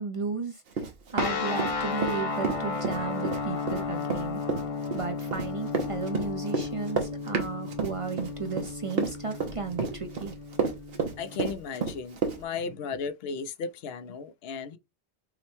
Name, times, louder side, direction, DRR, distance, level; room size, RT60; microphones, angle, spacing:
voice 1, 0.0-4.4 4.9-10.3 12.6-12.7 14.7-14.8, right 4 dB, 40° right, 0.5 m, -34 dB
Run, 0.7-2.2 2.4-12.4, right 5 dB, 70° right, 1.1 m, -30 dB
sound 1, 1.2-11.5, left 4 dB, 40° left, 0.6 m, -34 dB
voice 2, 11.2-14.8, left 5 dB, 75° left, 0.8 m, -35 dB
5.9 x 2.2 x 3.0 m
omnidirectional pair, 1.0 m